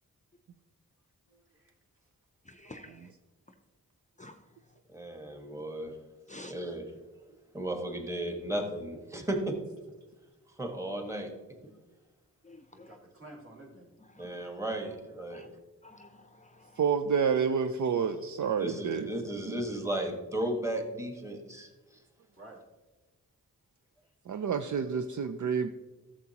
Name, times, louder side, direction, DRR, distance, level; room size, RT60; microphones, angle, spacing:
voice 1, 2.5-3.0 4.2-4.3 6.3-6.5 12.4-13.0 14.2-14.3 15.3-15.5 15.8-16.7, left 1 dB, 20° left, 6 dB, 0.6 m, -49 dB
voice 2, 4.9-5.9 6.4-6.9 7.5-9.5 10.6-11.3 14.2-15.5 18.6-21.7, right 1 dB, 10° right, 3 dB, 1.5 m, -34 dB
voice 3, 12.7-14.0 17.4-17.5 18.0-18.3 22.3-22.6, right 1 dB, 40° right, -2 dB, 2.4 m, -52 dB
voice 4, 16.8-19.1 19.5-19.6 24.3-25.7, right 6 dB, 60° right, 7 dB, 0.5 m, -29 dB
12.0 x 7.3 x 2.9 m, 1.2 s
cardioid pair, 65°, 34 cm